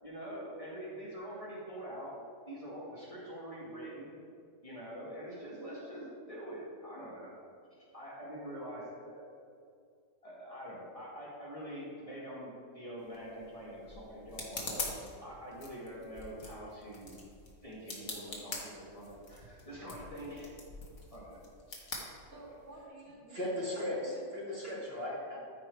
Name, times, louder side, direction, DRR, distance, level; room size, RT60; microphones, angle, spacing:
voice 1, 0.0-2.2 2.5-4.2 4.6-7.3 7.9-9.3 10.2-17.2 17.6-20.5 21.1-21.4, equal, 25° left, -7 dB, 2.2 m, -45 dB
sound 1, 13.0-22.8, left 3 dB, 60° left, 1.8 m, -45 dB
voice 2, 22.2-23.4 23.7-24.3, right 2 dB, 80° right, -6 dB, 2.9 m, -51 dB
voice 3, 23.3-25.4, left 1 dB, 40° right, -5 dB, 2.5 m, -37 dB
14.0 x 4.8 x 4.8 m, 2.3 s
omnidirectional pair, 1.5 m